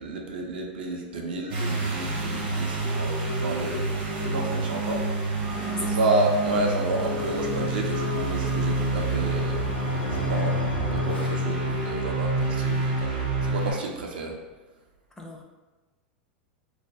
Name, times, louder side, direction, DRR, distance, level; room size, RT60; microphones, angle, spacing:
voice 1, 0.0-3.9 4.2-5.0 5.8-10.6 10.9-14.4, right 2 dB, 70° right, 1 dB, 0.4 m, -30 dB
sound 1, 1.5-13.7, right 2 dB, 55° right, 0.8 m, -27 dB
voice 2, 5.5-6.0 15.2-15.4, left 1 dB, 10° left, 1 dB, 0.4 m, -37 dB
sound 2, 8.0-12.3, equal, 85° left, 0.3 m, -37 dB
2.3 x 2.1 x 2.7 m, 1.2 s
hypercardioid pair, 95°, 5 cm